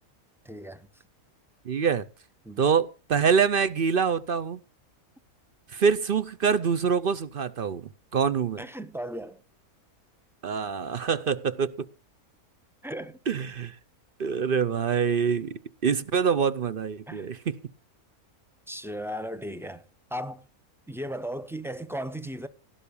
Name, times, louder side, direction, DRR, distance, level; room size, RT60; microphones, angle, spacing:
voice 1, 0.4-0.9 2.4-2.6 8.6-9.4 12.8-13.2 17.1-17.3 18.7-19.8 20.1-20.5 20.9-22.5, equal, 5° right, 0.4 m, -36 dB
voice 2, 1.6-2.0 2.6-4.6 5.7-8.6 10.4-11.9 13.3-13.7 14.2-17.5, right 6 dB, 50° right, 0.7 m, -25 dB
17.0 x 5.7 x 6.9 m
omnidirectional pair, 1.5 m